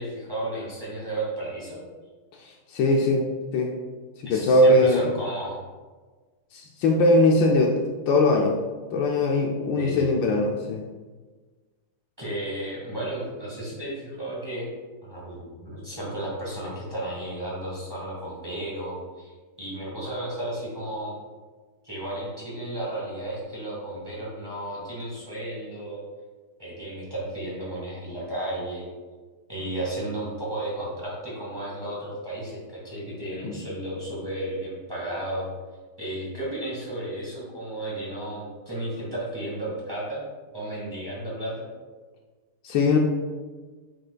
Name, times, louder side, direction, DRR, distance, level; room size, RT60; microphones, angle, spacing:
voice 1, 0.0-1.8 4.2-5.6 9.8-10.1 12.2-14.7 15.0-21.1 21.8-26.0 26.6-28.9 29.5-35.5 36.0-40.2 40.5-41.6, right 1 dB, 15° right, -6 dB, 1.5 m, -33 dB
voice 2, 2.4-3.3 3.5-3.7 4.2-5.1 6.5-7.8 8.1-8.6 8.9-10.9 33.4-33.6 42.6-43.0, left 2 dB, 75° left, 1 dB, 1.2 m, -21 dB
7.6 x 5.8 x 2.3 m, 1.4 s
omnidirectional pair, 2.2 m